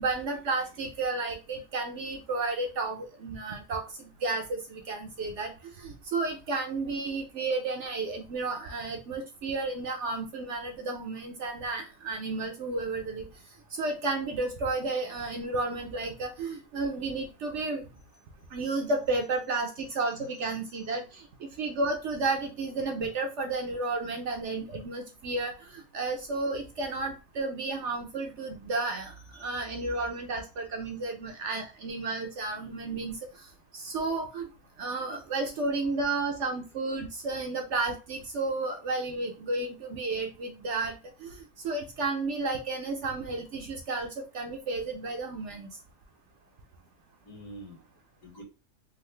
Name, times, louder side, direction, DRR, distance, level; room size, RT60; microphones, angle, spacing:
voice 1, 0.0-3.8 4.2-5.5 5.8-13.3 13.8-17.9 18.5-21.3 21.6-33.2 33.7-34.5 34.8-41.4 41.6-45.7, right 3 dB, 65° right, 3 dB, 0.8 m, -32 dB
voice 2, 20.1-20.9 29.0-30.1 30.7-30.8 32.5-33.0 35.1-35.2 47.2-47.8 48.2-48.4, equal, 65° left, 0 dB, 1.6 m, -49 dB
3.7 x 2.0 x 3.1 m, 0.30 s
omnidirectional pair, 1.5 m